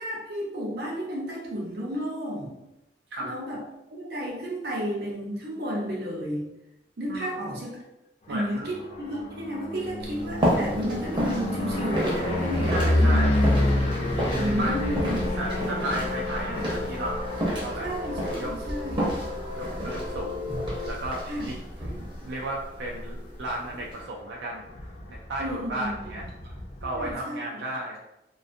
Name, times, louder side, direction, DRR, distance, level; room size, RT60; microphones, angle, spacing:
voice 1, 0.0-2.5 3.2-3.6 3.9-6.5 7.0-7.8 8.3-13.3 13.9-15.2 15.5-15.9 17.8-19.0 21.3-21.5 21.8-22.1 25.4-26.5 26.8-27.4, equal, 60° right, -3 dB, 0.7 m, -32 dB
voice 2, 8.3-8.7 12.6-13.5 14.6-14.9 15.4-17.2 17.6-17.9 18.4-18.5 19.6-21.6 22.2-24.6 25.1-26.3 26.8-28.0, right 1 dB, 80° right, -2 dB, 0.3 m, -34 dB
sound 1, 8.5-22.5 22.9-23.4 23.7-23.8 24.0-27.1, left 1 dB, 35° left, 0.4 m, -29 dB
sound 2, 10.0-24.0, equal, 25° right, 0.6 m, -32 dB
sound 3, 14.2-20.9, left 4 dB, 85° left, 0.7 m, -37 dB
2.4 x 2.3 x 2.5 m, 0.91 s
head